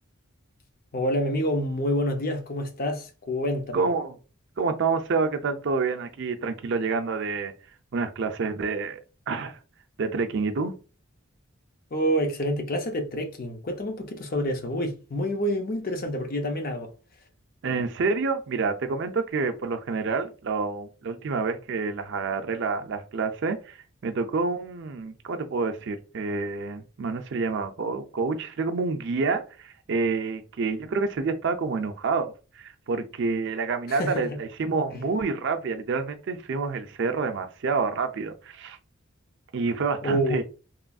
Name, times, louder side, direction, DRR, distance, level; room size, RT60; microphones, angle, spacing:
voice 1, 0.9-3.8 11.9-16.9 33.9-34.3 34.9-35.0 40.0-40.4, equal, 40° left, 0.5 m, -27 dB
voice 2, 3.7-4.2 4.6-7.5 7.9-9.0 9.3-9.6 10.0-10.7 17.6-23.8 24.0-38.8 39.5-40.4, right 4 dB, 55° right, 0.4 m, -28 dB
3.0 x 2.5 x 2.3 m
head